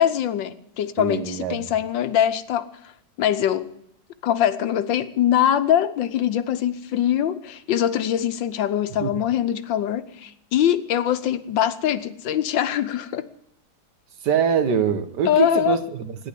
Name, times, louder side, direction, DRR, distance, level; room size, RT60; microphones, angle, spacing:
voice 1, 0.0-2.9 3.2-3.7 4.2-13.3 15.3-15.8, left 10 dB, 85° left, 1.6 m, -23 dB
voice 2, 1.0-1.7 9.0-9.1 14.2-16.3, right 7 dB, 70° right, 1.7 m, -23 dB
14.5 x 10.5 x 8.4 m
omnidirectional pair, 2.0 m